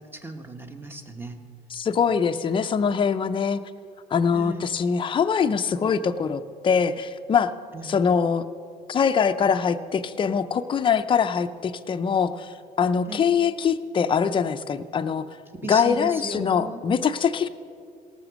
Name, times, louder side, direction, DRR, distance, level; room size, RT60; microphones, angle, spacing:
voice 1, 0.0-1.4 4.3-4.7 7.7-8.0 13.1-13.4 15.5-16.8, right 2 dB, 15° right, 6 dB, 1.1 m, -36 dB
voice 2, 1.7-3.6 4.1-7.5 7.8-8.4 8.9-15.3 15.7-17.5, left 6 dB, 30° left, 9 dB, 0.5 m, -23 dB
17.5 x 6.9 x 6.2 m, 2.3 s
cardioid pair, 110°, 17 cm